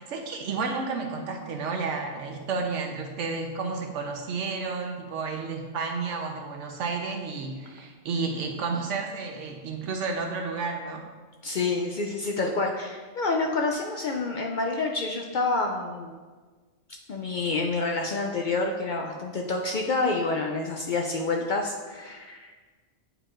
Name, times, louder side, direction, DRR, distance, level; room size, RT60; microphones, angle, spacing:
voice 1, 0.0-11.1, right 4 dB, 85° right, 3 dB, 1.1 m, -31 dB
voice 2, 11.4-16.1 17.1-22.6, left 3 dB, 60° left, 1 dB, 0.5 m, -28 dB
8.8 x 4.6 x 2.5 m, 1.4 s
omnidirectional pair, 1.2 m